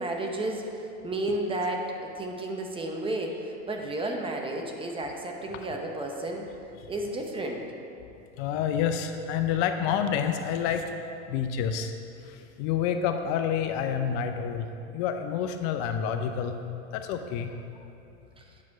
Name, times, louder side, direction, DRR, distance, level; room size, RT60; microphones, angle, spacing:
voice 1, 0.0-6.5 6.9-7.6 18.4-18.5, right 1 dB, 15° right, 2 dB, 0.9 m, -32 dB
voice 2, 8.4-10.9 11.3-11.9 12.3-14.7 14.9-16.6 16.9-17.5, left 8 dB, 50° left, 7 dB, 0.6 m, -28 dB
8.8 x 6.1 x 4.7 m, 2.7 s
supercardioid pair, 120°, 34 cm